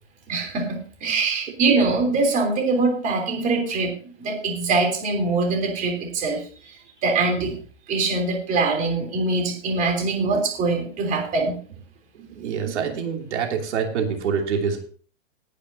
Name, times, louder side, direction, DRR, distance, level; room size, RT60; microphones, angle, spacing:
voice 1, 0.3-7.6 7.9-11.6, right 3 dB, 20° right, 2 dB, 3.3 m, -23 dB
voice 2, 12.2-14.9, right 6 dB, 60° right, 2 dB, 2.9 m, -26 dB
19.0 x 10.0 x 2.8 m, 0.42 s
hypercardioid pair, 150°, 39 cm